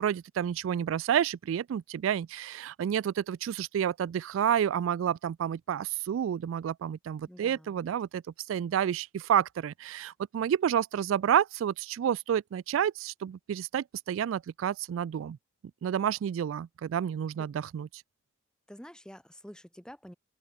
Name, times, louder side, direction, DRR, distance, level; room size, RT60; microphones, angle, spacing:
voice 1, 0.0-8.2 8.5-15.4 15.8-17.9, right 9 dB, 90° right, 0.3 m, -29 dB
voice 2, 7.3-7.8 18.7-20.1, equal, 5° left, 2.0 m, -48 dB
open air
head